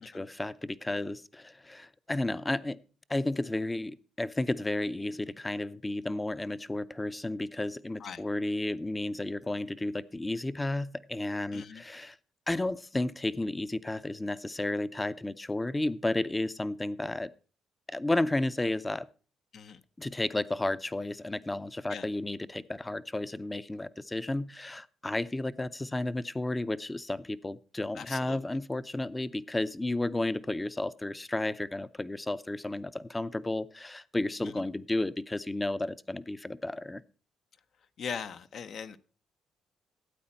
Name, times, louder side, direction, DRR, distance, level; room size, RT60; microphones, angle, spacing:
voice 1, 0.0-2.8 3.1-12.2 12.5-17.3 17.9-19.1 20.0-37.0, left 2 dB, 15° left, 16 dB, 0.5 m, -32 dB
voice 2, 11.5-11.8 19.5-19.8 21.9-22.1 27.9-28.4 34.4-34.7 38.0-39.0, left 6 dB, 60° left, 10 dB, 0.7 m, -40 dB
13.0 x 8.7 x 4.3 m, 0.38 s
cardioid pair, 90°, 0 cm